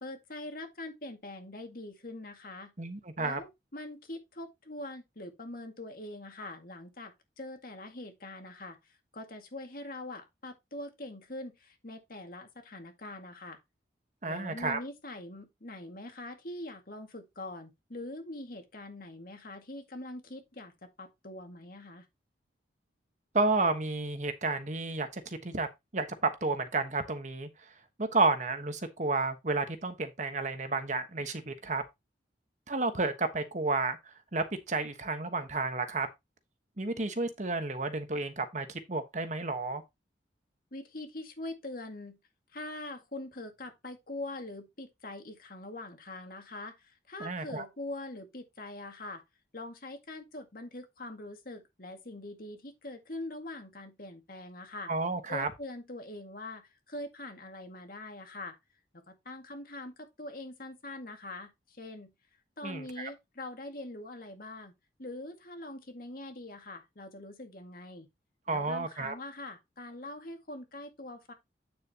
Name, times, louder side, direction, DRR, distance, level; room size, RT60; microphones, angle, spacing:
voice 1, 0.0-2.7 3.2-13.6 14.2-22.1 40.7-42.2 42.5-49.2 49.5-54.9 55.3-58.6 58.9-62.1 62.6-64.7 65.0-68.1 68.5-71.3, left 2 dB, 55° left, 2.0 m, -43 dB
voice 2, 2.8-3.4 14.2-14.8 23.3-25.7 25.9-27.7 28.0-31.8 32.7-36.1 36.8-39.8 47.2-47.7 54.9-55.5 62.6-63.1 68.5-69.1, right 3 dB, 45° right, 1.2 m, -31 dB
9.4 x 6.9 x 2.9 m
head